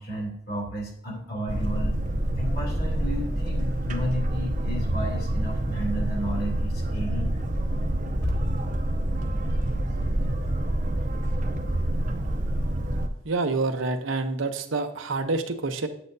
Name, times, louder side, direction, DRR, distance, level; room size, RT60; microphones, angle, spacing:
voice 1, 0.0-2.0 2.4-7.4 8.2-8.3, equal, 50° left, -1 dB, 2.9 m, -32 dB
Boat Water vehicle, 1.5-13.1, right 1 dB, 40° right, 0.7 m, -27 dB
voice 2, 13.2-15.9, right 3 dB, 85° right, 6 dB, 0.9 m, -27 dB
8.8 x 8.6 x 2.7 m, 0.70 s
head